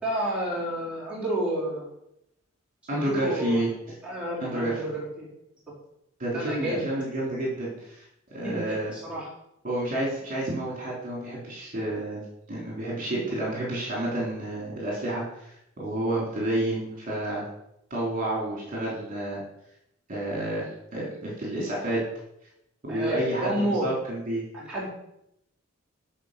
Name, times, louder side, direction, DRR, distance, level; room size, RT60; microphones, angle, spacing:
voice 1, 0.0-1.9 2.9-3.6 4.0-5.3 6.3-6.9 8.4-9.3 22.9-23.9 24.5-24.9, right 1 dB, 5° right, -8 dB, 4.0 m, -30 dB
voice 2, 2.9-3.7 4.4-4.7 6.2-8.0 8.3-8.9 9.6-12.2 12.5-17.4 17.9-19.4 20.1-22.0 22.8-24.4, right 1 dB, 40° right, -5 dB, 3.5 m, -30 dB
11.5 x 4.8 x 6.6 m, 0.80 s
head